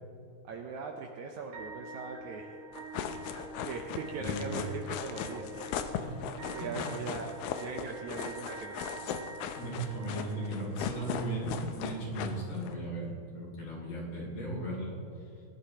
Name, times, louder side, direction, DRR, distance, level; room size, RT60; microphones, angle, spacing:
voice 1, 0.4-2.5 3.7-5.8 6.5-8.7, right 4 dB, 75° right, 2 dB, 1.8 m, -40 dB
sound 1, 1.5-11.6, right 2 dB, 55° right, 2.0 m, -47 dB
sound 2, 2.7-12.7, left 8 dB, 90° left, 2.5 m, -38 dB
voice 2, 4.2-4.6 6.0-6.2 6.5-6.9 9.6-15.0, right 1 dB, 60° left, -4 dB, 4.2 m, -37 dB
20.0 x 11.5 x 2.9 m, 2.4 s
omnidirectional pair, 4.0 m